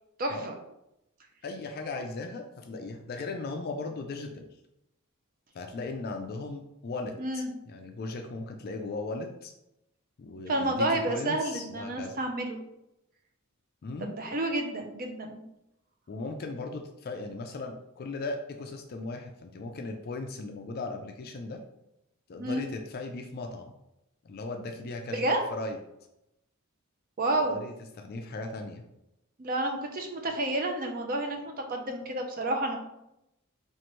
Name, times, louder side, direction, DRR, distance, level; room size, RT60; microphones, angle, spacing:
voice 1, 0.2-0.6 7.2-7.5 10.5-12.6 14.0-15.4 22.4-22.7 25.1-25.4 27.2-27.6 29.4-32.8, right 1 dB, 40° right, 3 dB, 0.6 m, -30 dB
voice 2, 1.4-4.5 5.5-9.5 10.2-12.2 13.8-14.2 16.1-21.6 22.3-23.7 24.2-25.8 27.4-28.8, left 3 dB, 45° left, 4 dB, 0.4 m, -37 dB
4.4 x 2.5 x 3.0 m, 0.86 s
head